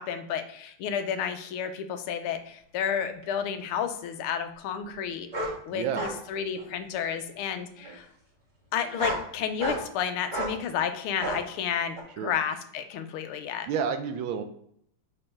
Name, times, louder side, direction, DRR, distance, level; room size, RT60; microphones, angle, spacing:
voice 1, 0.0-8.1 8.7-13.7, left 8 dB, 85° left, 8 dB, 1.5 m, -31 dB
sound 1, 3.2-3.3 5.3-5.5 5.9-6.2 6.6-7.1 7.8-8.0 8.8-9.2 9.6-9.9 10.3-10.6 11.2-11.4 12.0-12.1, right 1 dB, 25° right, 1.2 m, -32 dB
voice 2, 5.7-6.1 12.2-12.3 13.7-14.4, right 7 dB, 75° right, 8 dB, 1.3 m, -30 dB
5.3 x 4.4 x 4.3 m, 0.68 s
omnidirectional pair, 2.4 m